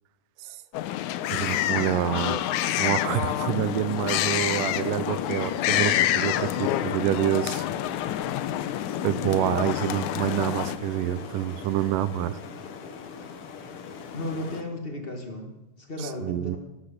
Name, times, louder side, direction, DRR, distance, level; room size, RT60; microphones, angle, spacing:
sound 1, 0.7-10.8, left 12 dB, 80° left, 2.0 m, -27 dB
voice 1, 1.3-2.4 2.8-7.6 9.0-12.4 16.0-16.6, right 12 dB, 85° right, 14 dB, 2.3 m, -27 dB
sound 2, 2.6-14.6, left 5 dB, 55° left, 1.7 m, -40 dB
voice 2, 14.1-16.6, left 1 dB, 35° left, 3 dB, 0.8 m, -34 dB
19.0 x 8.0 x 6.7 m, 0.99 s
omnidirectional pair, 3.7 m